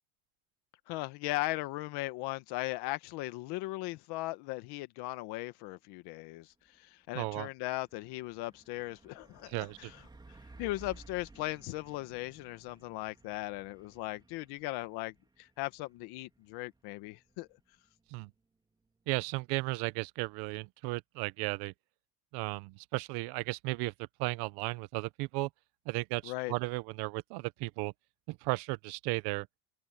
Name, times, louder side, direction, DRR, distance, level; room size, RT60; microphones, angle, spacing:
voice 1, 0.9-10.0 10.6-17.5 26.2-26.5, left 19 dB, 80° left, 1.3 m, -38 dB
Truck, 6.5-6.8 7.1-19.7, right 3 dB, 10° right, 3.8 m, -59 dB
voice 2, 7.1-7.5 9.5-9.9 18.1-18.3 19.1-21.7 22.3-25.5 25.9-27.9 28.3-29.5, right 24 dB, 90° right, 0.8 m, -35 dB
cardioid pair, 155°, 39 cm